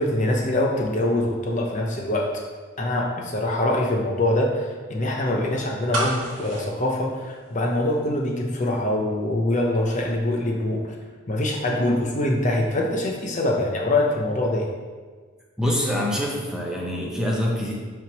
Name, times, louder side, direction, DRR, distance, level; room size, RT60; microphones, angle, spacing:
voice 1, 0.0-2.3 2.8-10.8 11.3-14.7, left 1 dB, 35° left, -1 dB, 0.7 m, -24 dB
sound 1, 5.9-7.9 8.2-8.3, right 1 dB, 60° right, 1.7 m, -30 dB
voice 2, 15.6-17.7, left 1 dB, 5° right, -3 dB, 0.8 m, -25 dB
5.7 x 3.6 x 6.0 m, 1.5 s
head